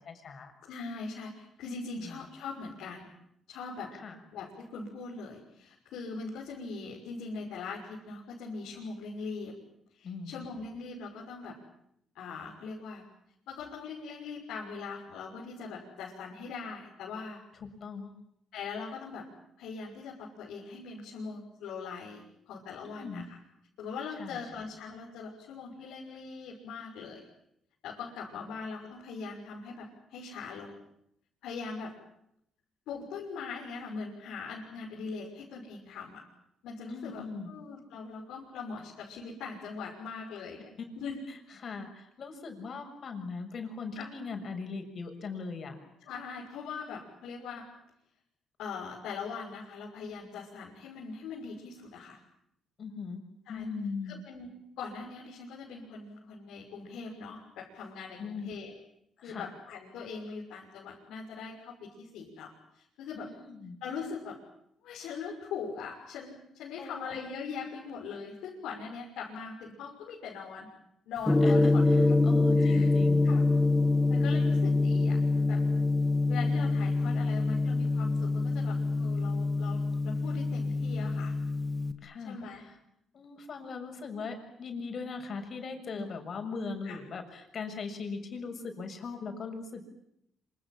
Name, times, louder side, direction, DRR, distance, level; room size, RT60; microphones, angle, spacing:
voice 1, 0.0-0.5 2.0-2.2 3.9-4.2 10.0-10.4 17.6-18.1 22.8-23.3 24.2-24.4 36.9-37.5 41.6-45.7 52.8-53.2 53.5-54.2 58.2-58.5 59.2-59.4 63.1-63.8 66.8-67.3 71.4-71.7 72.2-73.3 82.0-82.7 83.1-89.9, left 4 dB, 55° left, 5 dB, 6.9 m, -40 dB
voice 2, 0.6-3.1 3.5-3.9 4.3-9.5 9.9-11.6 12.1-13.0 13.5-17.4 18.5-19.3 19.6-23.4 23.8-27.3 27.8-30.8 31.4-31.9 32.9-36.2 36.6-40.7 41.0-41.2 43.9-44.1 46.0-47.7 48.6-52.2 53.5-53.6 54.0-58.7 59.2-63.3 63.8-64.4 64.8-70.7 71.1-72.2 72.6-72.9 73.2-73.5 74.1-75.6 76.3-81.4 82.2-82.6 85.9-86.1 86.8-87.0, left 5 dB, 90° left, -3 dB, 6.2 m, -41 dB
Gong, 71.3-81.9, left 3 dB, 10° left, 2.2 m, -25 dB
27.0 x 26.5 x 7.7 m, 0.76 s
cardioid pair, 90°, 0 cm